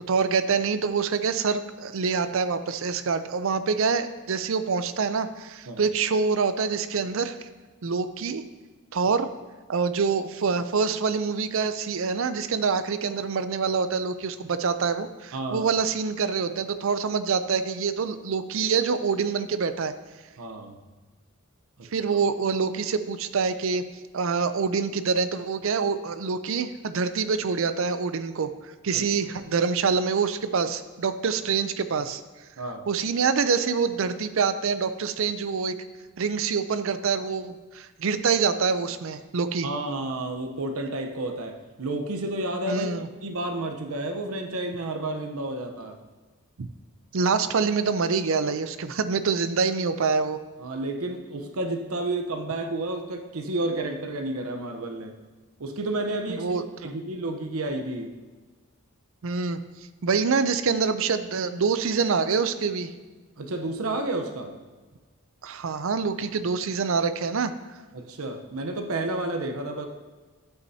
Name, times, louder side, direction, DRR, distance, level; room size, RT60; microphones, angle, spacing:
voice 1, 0.1-7.4 7.8-8.4 8.9-9.3 9.7-19.9 21.9-23.8 24.1-28.5 28.8-32.2 32.9-35.7 36.2-39.7 42.7-43.1 46.6-46.7 47.1-50.4 56.3-56.9 59.2-59.6 60.0-62.9 65.4-67.5, right 5 dB, 60° right, 11 dB, 0.5 m, -26 dB
voice 2, 15.3-15.7 20.4-20.8 21.8-21.9 28.9-29.0 32.6-32.9 39.6-42.9 43.2-46.0 50.6-55.2 55.6-56.5 56.8-58.1 63.4-64.6 67.9-69.9, right 2 dB, 80° right, 4 dB, 0.9 m, -31 dB
11.5 x 8.1 x 2.8 m, 1.3 s
head